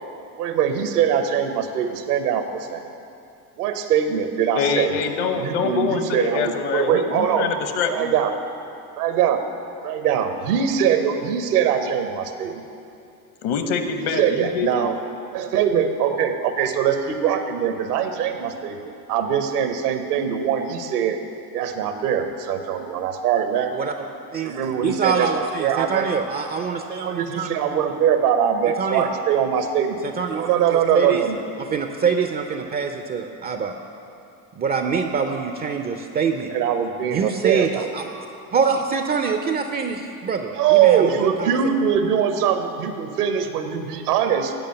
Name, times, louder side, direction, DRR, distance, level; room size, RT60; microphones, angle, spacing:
voice 1, 0.4-2.8 3.6-5.0 5.3-7.5 7.9-8.4 9.0-9.5 9.8-12.6 14.2-14.9 15.3-21.2 21.5-23.9 24.4-26.1 27.0-30.0 30.3-31.4 36.5-37.9 40.5-44.5, right 8 dB, 75° right, 7 dB, 1.0 m, -22 dB
voice 2, 4.5-8.1 13.4-14.9, left 5 dB, 55° left, 7 dB, 1.0 m, -25 dB
voice 3, 24.3-27.5 28.8-29.1 30.0-31.2 31.6-33.7 34.6-36.5 37.0-38.1 38.5-41.5, right 5 dB, 25° right, 5 dB, 0.4 m, -25 dB
9.1 x 5.1 x 7.7 m, 2.6 s
hypercardioid pair, 80°, 46 cm